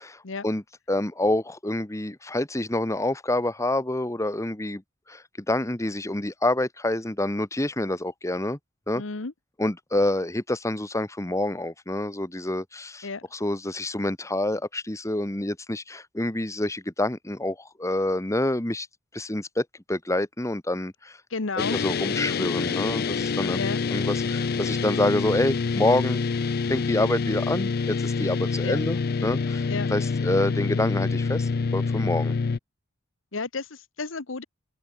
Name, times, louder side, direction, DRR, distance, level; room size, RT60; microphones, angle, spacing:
voice 1, 0.9-4.8 5.1-8.6 8.9-9.0 9.6-13.1 13.3-18.9 19.1-21.2 21.7-23.6 23.9-26.2 26.7-32.3, left 1 dB, 15° left, 1.4 m, -27 dB
voice 2, 8.9-9.3 13.0-13.2 21.3-21.8 23.5-23.8 28.6-28.8 29.7-29.9 33.3-34.4, left 4 dB, 75° left, 1.2 m, -32 dB
sound 1, 21.6-32.6, left 4 dB, 50° left, 0.5 m, -26 dB
open air
head